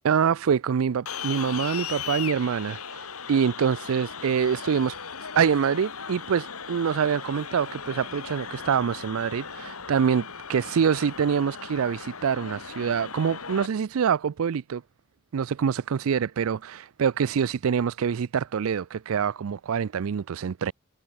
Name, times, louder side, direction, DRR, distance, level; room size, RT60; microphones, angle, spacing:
voice 1, 0.0-5.0 5.4-14.8 15.3-20.7, right 7 dB, 75° right, 0.4 m, -25 dB
sound 1, 1.1-13.7, left 6 dB, 85° left, 2.8 m, -37 dB
head